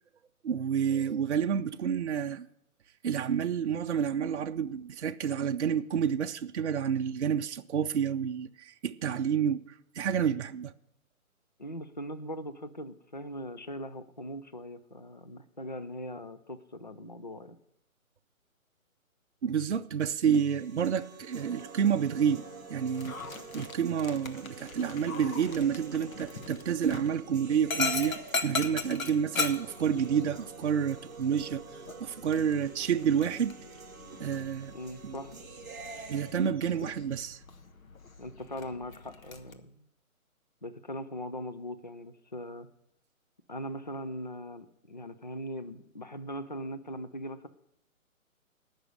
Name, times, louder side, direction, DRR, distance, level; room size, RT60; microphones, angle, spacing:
voice 1, 0.4-2.5 3.0-9.6 9.9-10.7 19.4-22.4 22.7-23.2 23.5-28.2 28.4-31.6 32.0-33.6 34.2-34.7 35.0-35.2 36.1-37.4, right 7 dB, 55° right, 0.6 m, -29 dB
voice 2, 11.6-17.6 34.7-35.4 38.2-39.8 40.6-42.7 43.5-47.5, equal, 35° left, 0.4 m, -40 dB
sound 1, 20.3-36.3, right 3 dB, 15° right, 0.7 m, -47 dB
Dog, 22.9-39.5, left 4 dB, 70° left, 1.4 m, -39 dB
17.5 x 6.3 x 6.4 m
hypercardioid pair, 160°, 42 cm